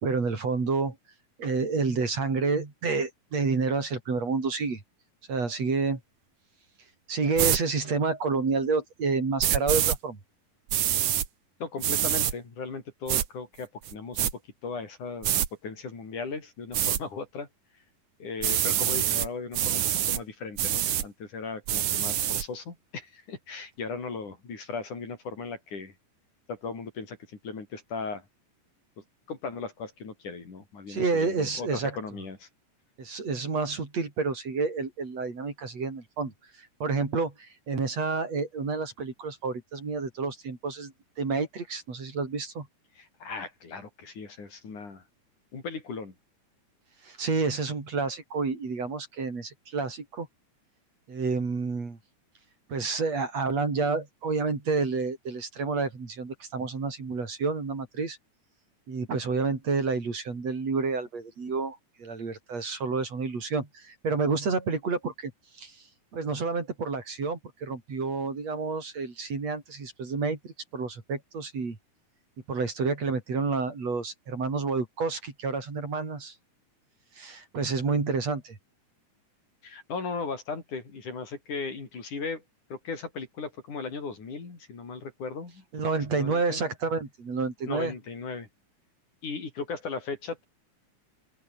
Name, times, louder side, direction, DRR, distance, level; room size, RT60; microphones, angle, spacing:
voice 1, 0.0-1.0 1.4-4.8 5.3-6.0 7.1-10.2 30.9-32.0 33.0-42.7 47.0-50.3 51.1-52.0 52.7-58.2 58.9-65.3 65.6-65.8 66.1-71.8 72.5-76.3 77.2-78.6 85.7-87.9, right 4 dB, 55° right, 5.7 m, -29 dB
sound 1, 7.4-7.6 9.4-10.0 10.7-11.3 11.8-12.3 13.1-13.3 13.8-14.3 15.2-15.5 16.7-17.0 18.4-19.3 19.5-20.2 20.6-21.1 21.7-22.4, right 11 dB, 75° right, 3.2 m, -25 dB
voice 2, 11.6-17.5 18.2-25.9 26.5-28.2 29.3-32.5 43.0-45.0 45.5-46.1 79.6-82.4 82.7-85.6 86.1-86.7 87.6-88.5 89.2-90.5, left 4 dB, 70° left, 6.8 m, -37 dB
open air
omnidirectional pair, 3.7 m